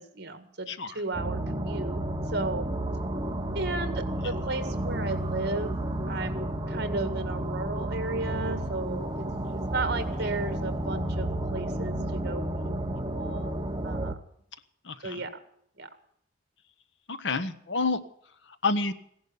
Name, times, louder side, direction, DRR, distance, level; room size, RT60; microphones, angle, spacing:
voice 1, 0.0-0.7 0.9-2.0 2.3-2.7 3.5-9.2 9.7-12.7 13.1-13.6 13.8-14.2 15.0-15.3 15.8-15.9, right 3 dB, 60° right, 10 dB, 1.9 m, -34 dB
voice 2, 0.7-1.0 4.2-4.3 14.8-15.2 17.1-18.0 18.5-18.9, left 3 dB, 65° left, 12 dB, 1.1 m, -29 dB
sound 1, 1.1-14.1, right 1 dB, 20° right, 1.1 m, -31 dB
16.0 x 11.0 x 7.0 m, 0.68 s
head